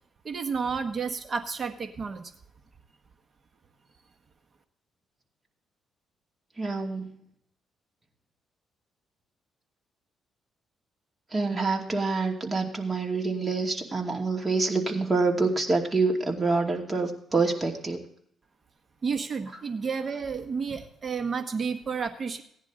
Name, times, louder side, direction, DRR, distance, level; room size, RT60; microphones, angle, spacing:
voice 1, 0.2-2.3 19.0-22.4, right 5 dB, 40° right, 7 dB, 1.3 m, -31 dB
voice 2, 6.6-7.0 11.3-18.0, right 3 dB, 20° right, 1 dB, 2.6 m, -26 dB
17.5 x 10.5 x 3.8 m, 0.69 s
cardioid pair, 90°, 0 cm